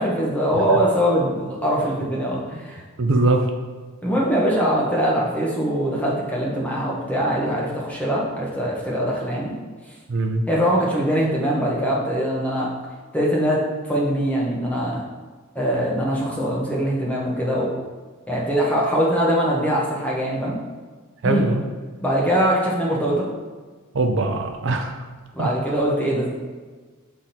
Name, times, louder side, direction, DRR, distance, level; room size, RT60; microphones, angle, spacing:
voice 1, 0.0-2.8 4.0-9.5 10.5-12.7 13.1-13.6 13.9-15.0 15.5-17.7 18.3-20.5 21.2-21.4 22.0-23.3 25.3-26.3, equal, 5° left, -5 dB, 1.3 m, -22 dB
voice 2, 3.0-3.5 10.1-10.4 21.2-21.6 23.9-24.9 25.4-25.5, right 2 dB, 60° right, 4 dB, 0.5 m, -21 dB
7.7 x 3.7 x 4.2 m, 1.4 s
head